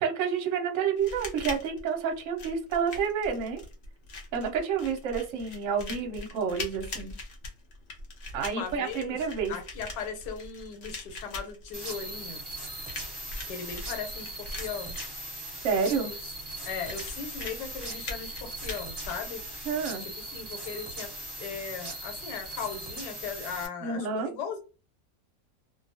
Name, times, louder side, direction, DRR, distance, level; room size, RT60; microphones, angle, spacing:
voice 1, 0.0-3.6 4.3-7.1 8.3-9.5 15.6-16.1 19.7-20.0 23.8-24.3, right 6 dB, 60° right, 4 dB, 0.9 m, -29 dB
sound 1, 1.0-20.0, left 2 dB, 55° left, 0.8 m, -42 dB
voice 2, 8.4-9.2 9.5-12.4 13.5-15.0 16.0-16.1 16.6-19.4 20.0-21.1 21.4-24.7, left 6 dB, 85° left, 6 dB, 1.3 m, -38 dB
sound 2, 11.7-23.7, right 1 dB, 20° right, 0.9 m, -39 dB
2.5 x 2.3 x 2.6 m, 0.32 s
omnidirectional pair, 1.8 m